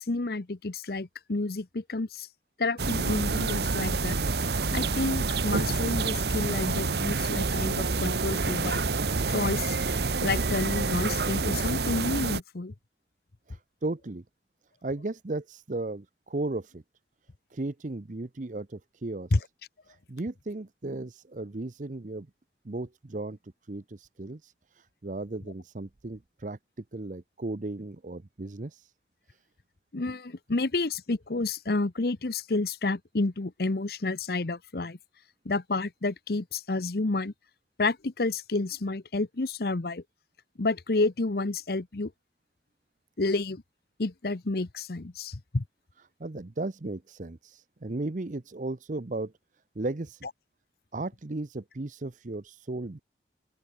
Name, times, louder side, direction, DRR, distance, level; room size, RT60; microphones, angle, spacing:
voice 1, 0.0-2.3 2.6-4.2 4.7-8.8 9.3-9.8 10.2-12.7 19.3-19.4 29.9-35.0 35.4-37.3 37.8-40.0 40.6-42.1 43.2-43.6 44.0-45.6, left 3 dB, 60° left, 0.9 m, -30 dB
sound 1, 2.8-12.4, right 4 dB, 65° right, 1.1 m, -28 dB
voice 2, 13.5-14.2 14.8-16.8 17.5-19.5 19.9-22.3 22.6-23.4 23.6-26.6 26.9-28.9 29.3-29.4 46.2-49.3 49.7-50.3 50.9-53.0, right 2 dB, 45° right, 0.7 m, -35 dB
open air
head